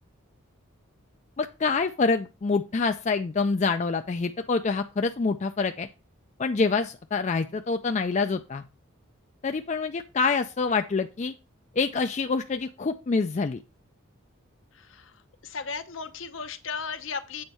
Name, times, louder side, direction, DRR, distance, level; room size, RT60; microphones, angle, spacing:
voice 1, 1.4-5.9 6.4-8.6 9.4-11.3 11.8-13.6, left 4 dB, 35° left, 7 dB, 0.3 m, -26 dB
voice 2, 15.4-17.4, left 5 dB, 65° left, 9 dB, 0.8 m, -35 dB
7.9 x 4.5 x 5.3 m, 0.30 s
head